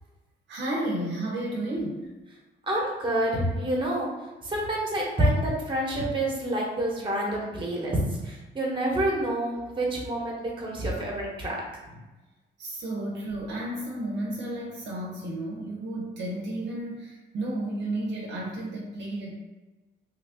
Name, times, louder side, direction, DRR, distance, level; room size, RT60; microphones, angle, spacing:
voice 1, 0.5-2.0 12.6-19.3, right 1 dB, 65° right, -3 dB, 0.8 m, -32 dB
voice 2, 2.7-4.1 4.4-8.0 8.2-11.6, right 1 dB, 25° right, -3 dB, 1.2 m, -27 dB
3.2 x 2.3 x 3.6 m, 1.1 s
cardioid pair, 90°, 20 cm